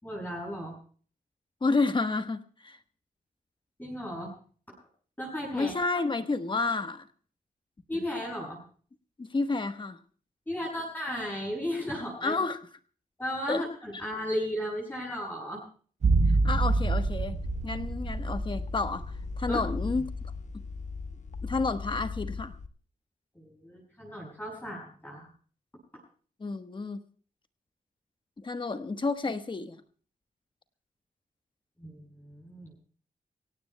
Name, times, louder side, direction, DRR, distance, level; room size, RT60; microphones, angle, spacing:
voice 1, 0.0-0.8 3.8-4.3 4.7-4.8 5.2-5.7 7.9-8.6 10.5-12.4 13.2-15.6 19.5-19.6 23.3-25.3 25.9-26.0 31.8-32.8, equal, 10° left, -4 dB, 7.5 m, -35 dB
voice 2, 1.6-2.8 5.5-7.0 9.2-10.0 12.2-12.6 13.5-13.6 13.9-14.0 16.4-17.4 17.6-19.0 19.4-20.0 21.4-22.5 26.4-27.0 28.4-29.8, left 3 dB, 30° left, 9 dB, 1.2 m, -30 dB
sound 1, 16.0-20.3 20.5-20.6, right 3 dB, 50° right, 1.0 m, -27 dB
sound 2, 17.3-22.7, left 5 dB, 55° left, 1.1 m, -38 dB
24.5 x 17.0 x 2.2 m, 0.43 s
wide cardioid pair, 130°, 15 cm